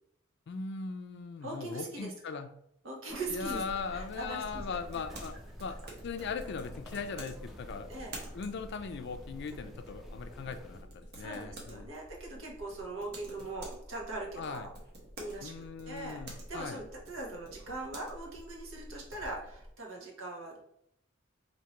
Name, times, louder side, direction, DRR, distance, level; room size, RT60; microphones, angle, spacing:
voice 1, 0.5-2.5 3.3-5.8 6.0-7.9 8.3-11.9 14.4-14.7 15.4-16.8, left 5 dB, 60° left, 8 dB, 0.4 m, -39 dB
voice 2, 1.4-2.1 2.8-3.6 3.9-4.8 7.9-8.1 11.2-14.7 15.2-15.5 15.9-16.2 16.5-20.6, right 2 dB, 80° right, -1 dB, 1.1 m, -41 dB
sound 1, 3.1-19.7, right 1 dB, 55° right, 1.0 m, -49 dB
sound 2, 3.2-10.8, equal, ahead, 0.5 m, -49 dB
4.4 x 2.8 x 2.9 m, 0.75 s
head